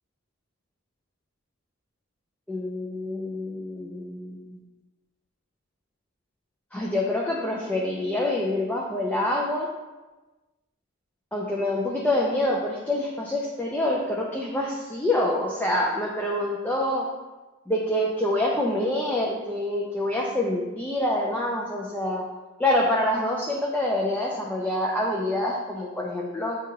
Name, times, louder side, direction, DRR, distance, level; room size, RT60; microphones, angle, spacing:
voice 1, 2.5-4.6 6.7-9.7 11.3-17.1 17.7-22.2 22.6-26.6, left 1 dB, 10° left, -3 dB, 0.4 m, -26 dB
6.2 x 2.3 x 2.9 m, 1.2 s
head